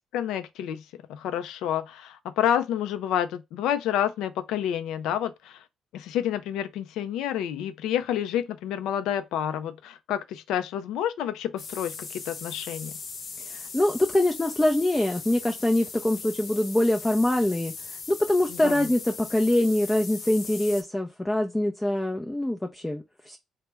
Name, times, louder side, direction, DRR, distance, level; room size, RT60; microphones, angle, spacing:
voice 1, 0.1-0.8 1.1-5.6 5.9-12.9 18.5-18.9, left 10 dB, 90° left, 0.3 m, -29 dB
sound 1, 11.6-20.8, left 4 dB, 60° left, 0.8 m, -39 dB
voice 2, 13.5-23.4, left 1 dB, 10° left, 0.4 m, -24 dB
3.3 x 2.0 x 3.1 m
cardioid pair, 90°, 0 cm